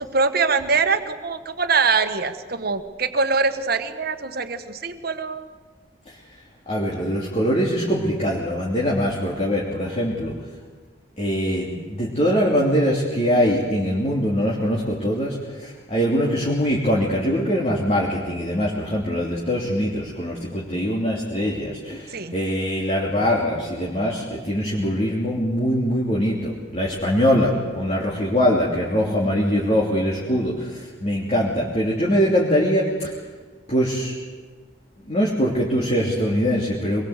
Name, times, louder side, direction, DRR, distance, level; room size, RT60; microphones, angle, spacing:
voice 1, 0.0-5.5 22.1-22.3, right 4 dB, 55° right, 8 dB, 1.5 m, -23 dB
voice 2, 6.7-10.3 11.2-33.1 33.7-34.1 35.1-37.1, equal, 35° left, -4 dB, 3.1 m, -22 dB
24.5 x 21.5 x 8.2 m, 1.4 s
head